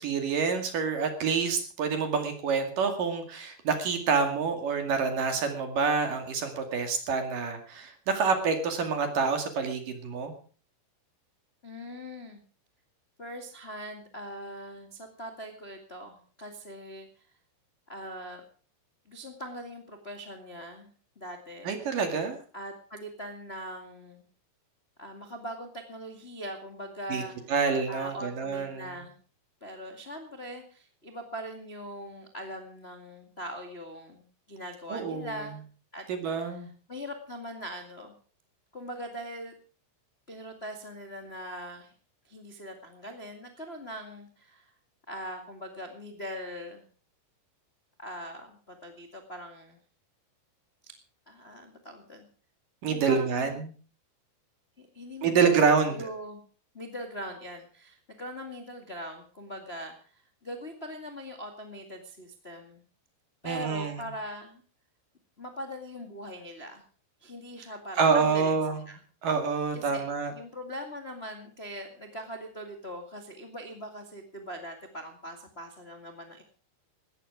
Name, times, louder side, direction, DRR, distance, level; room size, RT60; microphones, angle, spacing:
voice 1, 0.0-10.3 21.6-22.4 27.1-27.2 27.5-28.9 34.9-35.4 36.1-36.7 52.8-53.7 55.2-56.1 63.4-64.0 68.0-68.8 69.2-70.3, right 5 dB, 55° right, 6 dB, 3.4 m, -27 dB
voice 2, 11.6-12.4 13.2-17.2 17.9-18.4 19.0-21.8 22.5-24.2 25.0-27.4 27.9-29.1 29.6-35.6 35.9-36.0 36.5-36.6 36.9-38.1 38.7-39.5 40.3-41.9 42.2-44.7 45.1-46.8 48.0-49.8 50.8-50.9 51.3-52.3 52.9-53.6 54.8-55.6 55.9-56.4 56.7-62.8 63.4-64.6 65.4-66.8 67.2-68.6 68.8-69.0 69.7-70.0 70.3-76.4, equal, 50° left, 4 dB, 0.7 m, -41 dB
17.5 x 13.5 x 4.9 m, 0.41 s
omnidirectional pair, 5.2 m